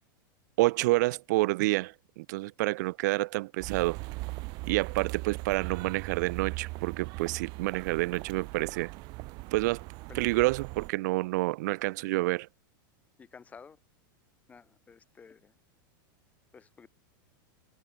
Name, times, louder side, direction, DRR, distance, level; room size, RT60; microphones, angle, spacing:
voice 1, 0.6-4.0 4.7-8.9 9.5-9.9 10.1-12.5, right 21 dB, 55° right, 0.7 m, -28 dB
sound 1, 3.6-10.9, right 26 dB, 40° right, 1.1 m, -39 dB
voice 2, 13.2-13.8 14.5-15.5 16.5-16.9, left 5 dB, 15° left, 1.8 m, -52 dB
supercardioid pair, 155°, 12 cm